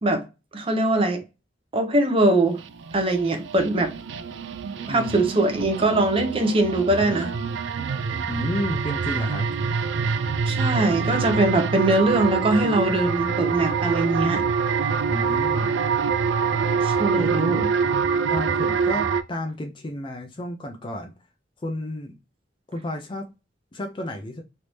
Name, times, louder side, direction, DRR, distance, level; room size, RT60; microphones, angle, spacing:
voice 1, 0.5-1.2 1.7-2.6 2.9-3.9 4.9-7.3 10.5-14.4 14.8-14.9 16.8-17.7, right 2 dB, 30° right, 0.7 m, -22 dB
sound 1, 2.6-19.2, right 5 dB, 90° right, 0.4 m, -25 dB
voice 2, 4.9-5.2 8.3-9.8 15.1-15.7 18.3-21.1 21.6-22.1 22.7-23.3 23.7-24.4, left 1 dB, 25° left, 0.4 m, -32 dB
3.3 x 2.7 x 3.0 m
head